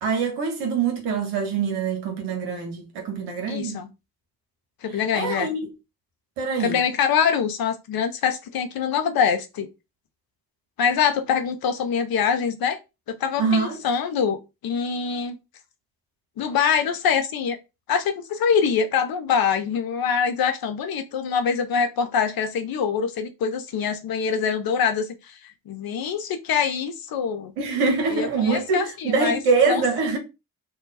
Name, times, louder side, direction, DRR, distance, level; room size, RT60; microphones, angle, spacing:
voice 1, 0.0-3.8 5.1-5.7 6.4-6.8 13.4-13.8 27.6-30.2, right 5 dB, 80° right, 1.0 m, -24 dB
voice 2, 3.5-3.9 4.8-5.5 6.6-9.7 10.8-12.8 13.1-15.4 16.4-17.6 17.9-27.5 28.1-29.4 29.7-29.8, left 7 dB, 65° left, 0.8 m, -24 dB
2.7 x 2.2 x 4.0 m
hypercardioid pair, 45°, 39 cm